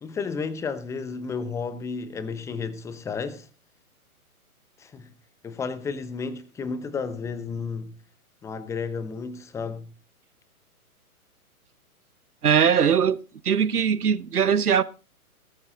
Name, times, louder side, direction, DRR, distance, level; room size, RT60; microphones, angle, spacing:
voice 1, 0.0-3.5 4.8-5.1 5.4-7.9 8.4-9.9, left 5 dB, 5° left, 0.7 m, -32 dB
voice 2, 12.4-13.2 13.4-14.8, right 7 dB, 85° right, 0.9 m, -20 dB
18.5 x 9.6 x 3.9 m
figure-of-eight pair, 125°, 44 cm